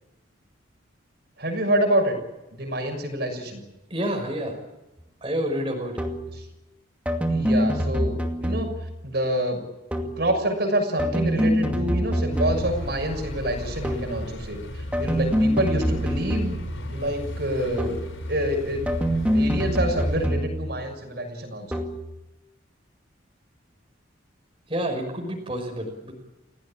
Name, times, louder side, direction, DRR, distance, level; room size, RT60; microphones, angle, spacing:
voice 1, 1.4-2.2 2.5-3.6 6.4-6.5 7.3-8.7 9.0-9.6 10.2-16.6 16.9-18.0 18.3-18.9 19.3-21.7, right 1 dB, 55° right, 4 dB, 6.6 m, -27 dB
voice 2, 3.9-4.6 5.2-6.0 24.7-26.1, equal, 25° right, 1 dB, 5.7 m, -28 dB
sound 1, 6.0-6.4 7.1-9.0 9.9-10.3 11.0-12.9 13.8-14.3 14.9-16.9 17.8-18.2 18.9-20.8 21.7-22.1, equal, 5° right, 2.4 m, -25 dB
sound 2, 12.3-20.3, left 1 dB, 85° left, 7.2 m, -35 dB
29.5 x 18.0 x 8.7 m, 1.0 s
head